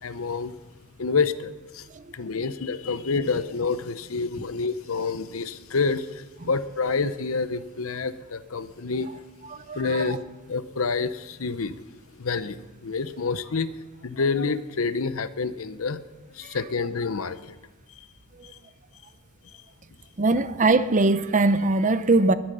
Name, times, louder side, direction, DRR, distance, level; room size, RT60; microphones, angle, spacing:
voice 1, 0.0-0.5 1.0-1.9 2.1-9.2 9.7-10.2 10.5-11.8 12.2-13.7 14.0-16.0 16.3-17.6 18.4-18.5, left 4 dB, 85° left, 0.8 m, -28 dB
voice 2, 9.5-10.2 20.2-22.3, right 3 dB, 40° right, 0.7 m, -21 dB
21.0 x 8.8 x 6.8 m
head